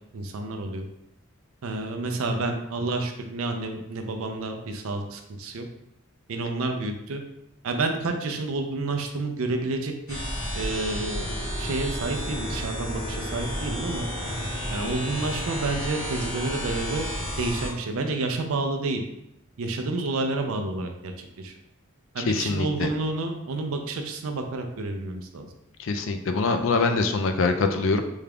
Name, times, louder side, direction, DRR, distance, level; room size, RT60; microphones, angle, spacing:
voice 1, 0.1-0.9 1.6-5.7 6.3-7.2 7.6-10.3 10.5-14.1 14.7-17.1 17.4-19.0 19.6-21.1 21.4-21.5 22.1-25.5, right 3 dB, 75° right, 5 dB, 0.5 m, -29 dB
sound 1, 10.1-17.7, equal, 75° left, 1.0 m, -31 dB
voice 2, 22.2-22.9 25.8-28.0, left 3 dB, 60° left, 7 dB, 0.3 m, -24 dB
3.5 x 2.3 x 3.4 m, 0.82 s
head